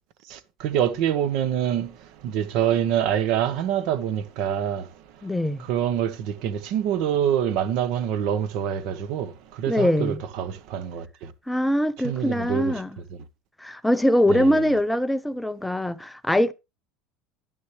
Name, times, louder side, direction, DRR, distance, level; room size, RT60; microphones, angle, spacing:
voice 1, 0.3-1.9 2.2-4.8 5.7-9.3 9.6-11.0 12.0-12.8 14.3-14.7, right 9 dB, 50° right, 1.0 m, -25 dB
voice 2, 5.2-5.6 9.7-10.2 11.5-12.9 13.6-16.5, left 1 dB, 5° left, 0.4 m, -22 dB
10.5 x 9.8 x 3.2 m
cardioid pair, 170°, 0 cm